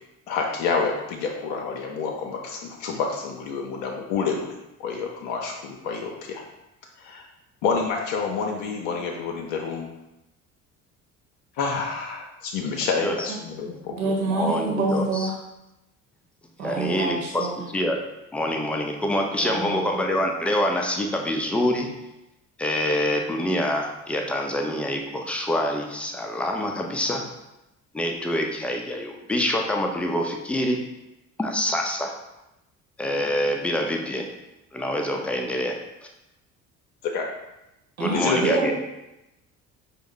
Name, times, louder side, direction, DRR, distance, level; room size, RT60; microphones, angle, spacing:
voice 1, 0.3-4.5 4.8-6.4 7.0-7.2 7.6-9.9 11.6-13.9 37.0-37.3 38.1-38.5, left 5 dB, 55° left, 1 dB, 0.6 m, -28 dB
voice 2, 12.8-13.2 14.0-15.3 16.6-18.0 18.3-21.9 22.6-27.2 27.9-30.8 31.4-32.1 33.0-34.3 34.7-35.8 38.0-38.7, left 1 dB, 5° left, 2 dB, 0.3 m, -26 dB
voice 3, 13.9-15.3 16.6-17.6 19.4-19.9 38.0-38.7, right 3 dB, 80° right, -2 dB, 0.9 m, -26 dB
5.0 x 2.0 x 3.7 m, 0.92 s
figure-of-eight pair, 55°, 41 cm